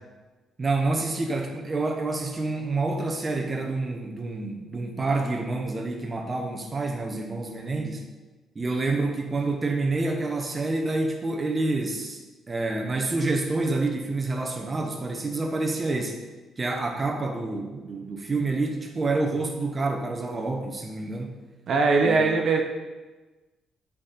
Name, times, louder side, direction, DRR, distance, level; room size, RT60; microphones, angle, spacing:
voice 1, 0.6-8.1 8.5-12.2 12.5-16.2 16.6-21.4 22.0-22.2, right 3 dB, 30° right, 3 dB, 0.9 m, -28 dB
voice 2, 21.7-22.6, right 4 dB, 55° right, 3 dB, 0.9 m, -21 dB
10.5 x 4.2 x 3.9 m, 1.2 s
cardioid pair, 90°, 0 cm